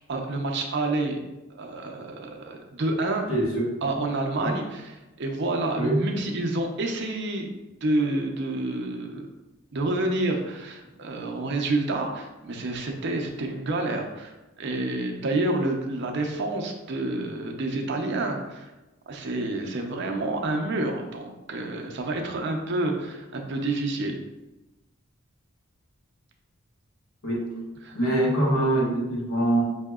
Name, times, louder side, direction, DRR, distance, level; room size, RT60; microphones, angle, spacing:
voice 1, 0.1-1.2 1.6-3.3 3.8-4.8 5.2-7.5 7.8-9.3 9.7-14.3 14.6-18.7 19.1-24.1 27.8-28.0, right 2 dB, 55° right, 2 dB, 0.5 m, -28 dB
voice 2, 3.3-3.8 4.5-4.6 5.8-6.1 27.2-27.5 27.9-29.6, right 1 dB, 80° left, -4 dB, 1.2 m, -24 dB
5.6 x 2.7 x 2.3 m, 1.0 s
head